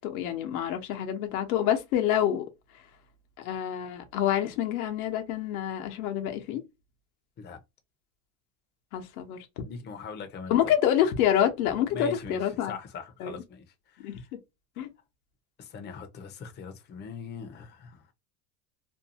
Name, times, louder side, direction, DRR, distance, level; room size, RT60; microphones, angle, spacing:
voice 1, 0.0-2.4 3.4-6.6 8.9-9.4 10.5-12.7 13.2-13.3 14.0-14.1 14.8-14.9, left 10 dB, 90° left, 0.8 m, -27 dB
voice 2, 9.7-10.7 11.9-12.4 12.6-14.2 15.6-18.0, left 5 dB, 25° left, 0.6 m, -41 dB
2.6 x 2.2 x 2.7 m
supercardioid pair, 120°, 42 cm